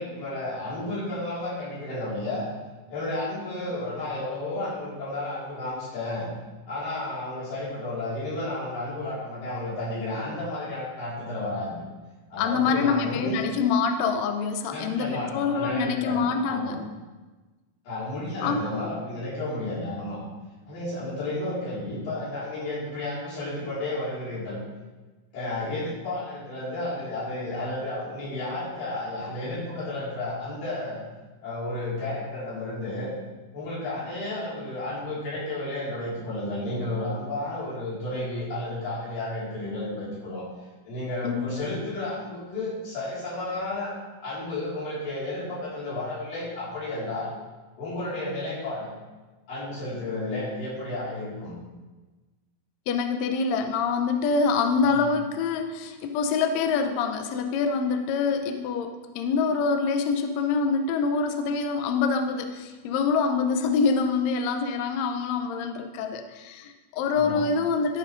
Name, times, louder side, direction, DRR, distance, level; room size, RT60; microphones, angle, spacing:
voice 1, 0.0-2.5 2.9-6.3 6.7-11.8 12.3-13.4 14.7-16.8 17.9-20.2 20.7-24.6 25.3-31.0 31.4-33.1 33.5-40.4 40.9-43.9 44.2-47.3 47.8-48.9 49.5-51.5 54.8-55.1 67.1-67.4, left 2 dB, 65° left, -8 dB, 5.7 m, -32 dB
voice 2, 12.4-16.8 18.4-18.7 41.2-41.4 52.9-68.0, left 5 dB, 85° left, 6 dB, 1.5 m, -25 dB
13.0 x 5.4 x 5.3 m, 1.2 s
omnidirectional pair, 4.2 m